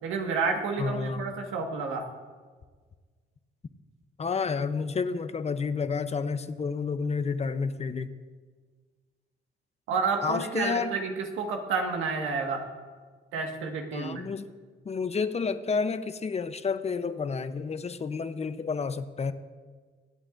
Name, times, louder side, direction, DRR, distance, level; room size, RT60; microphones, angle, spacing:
voice 1, 0.0-2.0 9.9-12.6 13.3-14.2, right 4 dB, 90° right, 3 dB, 1.6 m, -30 dB
voice 2, 0.8-1.3 4.2-8.1 10.2-10.9 13.9-14.5 14.8-19.3, left 5 dB, 30° left, 11 dB, 0.7 m, -30 dB
24.0 x 8.8 x 2.5 m, 1.5 s
cardioid pair, 90°, 20 cm